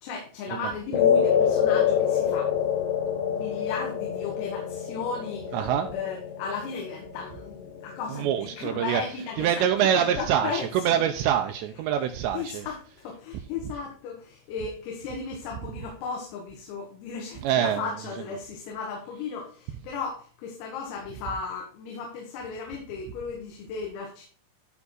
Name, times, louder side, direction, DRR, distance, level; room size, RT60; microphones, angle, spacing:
voice 1, 0.0-2.5 3.2-5.6 5.9-9.5 9.9-10.7 12.3-24.3, left 5 dB, 85° left, 4.6 m, -35 dB
sound 1, 0.9-9.4, left 8 dB, 65° left, 3.3 m, -27 dB
voice 2, 5.5-5.9 8.1-9.0 9.4-12.7 17.4-17.9, right 9 dB, 85° right, 2.5 m, -25 dB
13.5 x 4.7 x 4.0 m
omnidirectional pair, 6.0 m